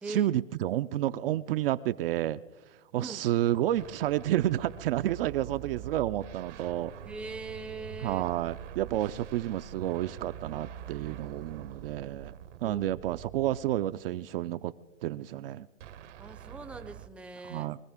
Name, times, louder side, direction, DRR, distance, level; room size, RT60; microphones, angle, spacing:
voice 1, 0.0-2.4 2.7-7.0 8.0-12.3 12.6-14.7 15.0-15.7 17.4-17.8, right 13 dB, 50° right, 11 dB, 0.5 m, -30 dB
sound 1, 3.8-14.0 15.8-17.1, right 10 dB, 65° right, 0.9 m, -45 dB
voice 2, 7.0-8.2 12.6-12.8 16.2-17.7, right 3 dB, 5° right, 9 dB, 0.6 m, -41 dB
23.5 x 14.5 x 3.6 m, 1.2 s
hypercardioid pair, 110°, 38 cm